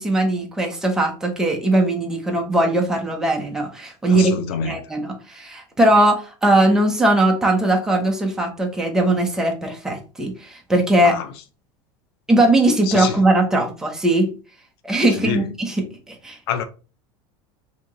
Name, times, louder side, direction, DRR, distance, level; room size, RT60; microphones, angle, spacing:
voice 1, 0.0-11.2 12.3-14.3 14.8-16.4, right 1 dB, 5° right, 0.7 m, -19 dB
voice 2, 4.1-4.7 11.0-11.3 12.9-13.2 15.2-15.4 16.5-16.6, left 7 dB, 85° left, 0.5 m, -26 dB
2.9 x 2.8 x 3.7 m
supercardioid pair, 155°, 12 cm